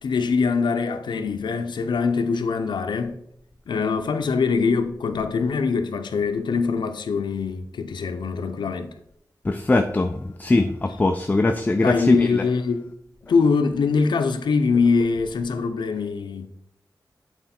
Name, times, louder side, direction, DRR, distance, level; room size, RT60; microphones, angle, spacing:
voice 1, 0.0-3.2 3.7-8.9 11.8-12.9 13.2-16.5, left 5 dB, 90° left, 0.6 m, -23 dB
voice 2, 9.4-12.4, left 2 dB, 20° left, 0.4 m, -21 dB
7.9 x 4.0 x 4.3 m
wide cardioid pair, 80°, 8 cm